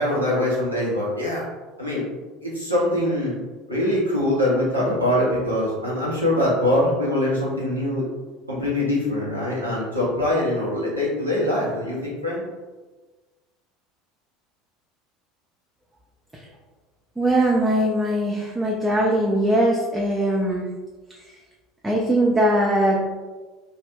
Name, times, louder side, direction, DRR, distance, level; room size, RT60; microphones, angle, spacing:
voice 1, 0.0-1.4 1.8-2.0 2.4-3.4 3.7-8.0 8.5-12.4, left 1 dB, 90° right, -6 dB, 0.7 m, -23 dB
voice 2, 17.2-20.7 21.8-23.0, right 1 dB, 10° right, -3 dB, 0.4 m, -20 dB
2.3 x 2.1 x 3.3 m, 1.3 s
figure-of-eight pair, 70°, 0 cm